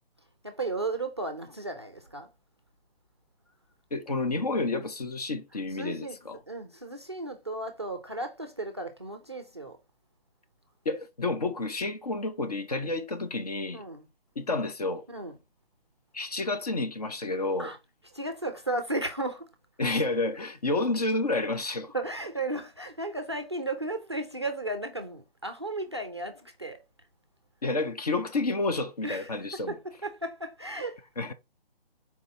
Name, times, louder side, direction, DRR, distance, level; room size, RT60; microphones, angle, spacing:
voice 1, 0.4-2.3 5.7-9.8 13.7-14.1 15.1-15.4 17.6-17.8 18.1-19.5 21.9-26.8 29.0-31.0, right 2 dB, 30° right, 0.4 m, -35 dB
voice 2, 3.9-6.4 10.9-13.8 14.4-15.1 16.1-17.7 19.8-21.9 27.6-29.7 31.2-31.3, left 2 dB, 40° left, 0.6 m, -30 dB
4.2 x 3.8 x 2.7 m
figure-of-eight pair, 150°, 30 cm